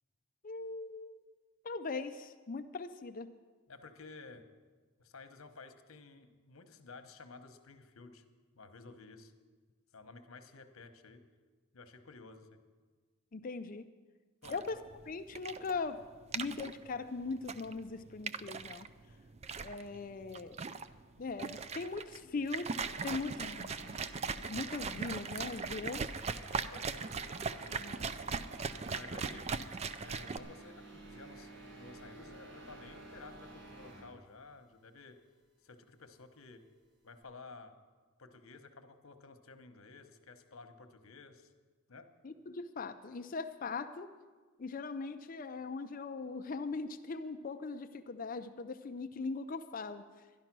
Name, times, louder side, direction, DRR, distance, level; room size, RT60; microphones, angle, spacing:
voice 1, 0.4-1.2 1.6-3.3 13.3-13.8 14.5-14.8 15.1-16.0 16.3-18.9 19.6-20.6 21.2-22.7 23.0-24.0 24.4-26.0 27.8-28.0 42.2-44.1 44.6-50.1, left 4 dB, 40° left, 9 dB, 0.5 m, -40 dB
voice 2, 3.7-4.4 5.0-8.2 8.6-9.3 9.9-11.2 11.7-12.6 14.4-14.6 26.5-27.2 28.9-29.5 30.0-35.2 35.6-36.7 37.0-37.8 38.2-41.5 41.9-42.1, left 3 dB, 75° left, 8 dB, 1.1 m, -53 dB
sound 1, 14.4-30.4, right 5 dB, 30° right, 0.3 m, -39 dB
sound 2, 22.8-34.2, right 2 dB, 55° right, 1.5 m, -52 dB
12.0 x 11.0 x 6.0 m, 1.4 s
head